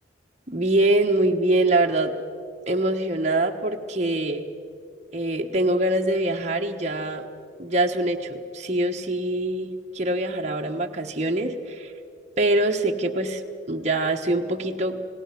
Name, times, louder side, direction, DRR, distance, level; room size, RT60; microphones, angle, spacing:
voice 1, 0.5-2.1 2.7-4.4 5.1-7.3 7.6-11.9 12.4-13.4 13.7-15.1, right 1 dB, 40° right, 2 dB, 1.2 m, -24 dB
28.5 x 19.0 x 6.0 m, 2.3 s
head